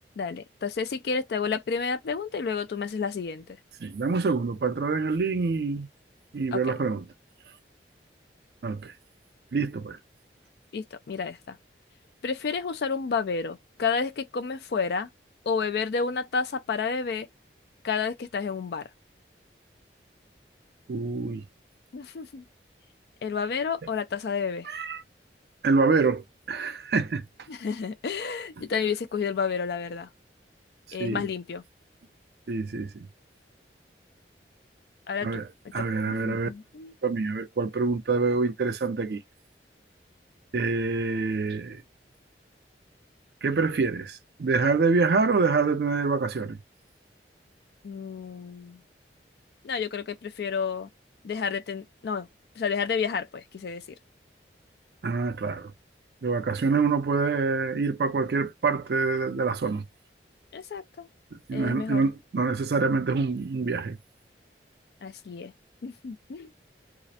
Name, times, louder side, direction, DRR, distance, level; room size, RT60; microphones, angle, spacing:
voice 1, 0.2-3.6 6.5-6.7 10.7-11.6 12.2-15.1 15.5-17.3 17.8-18.9 21.9-22.4 23.2-24.7 27.5-30.1 30.9-31.6 35.1-35.4 35.8-36.9 47.8-48.8 49.6-50.9 51.2-52.3 52.6-53.8 60.5-61.1 61.5-62.1 65.0-65.5 65.8-66.5, left 5 dB, 65° left, 0.3 m, -30 dB
voice 2, 3.8-5.9 6.3-7.0 8.6-8.9 9.5-10.0 20.9-21.4 24.7-25.0 25.6-27.2 31.0-31.2 32.5-33.1 35.2-35.5 35.7-36.5 37.0-39.2 40.5-41.8 43.4-46.6 55.0-55.7 56.2-59.8 61.3-64.0, right 4 dB, 65° right, 0.4 m, -26 dB
2.4 x 2.0 x 2.7 m
head